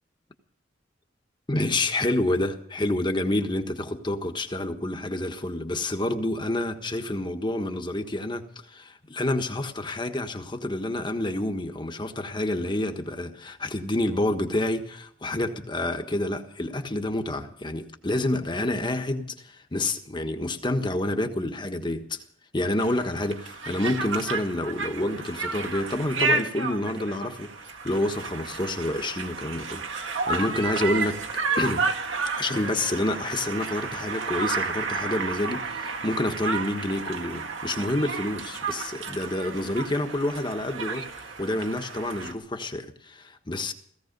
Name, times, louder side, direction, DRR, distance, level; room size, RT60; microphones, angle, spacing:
voice 1, 1.5-22.2 22.5-31.2 31.6-31.9 32.4-43.7, left 1 dB, 25° left, 1.4 m, -28 dB
Conversation, 22.8-42.3, right 4 dB, 75° right, 1.8 m, -32 dB
17.5 x 15.5 x 5.3 m
head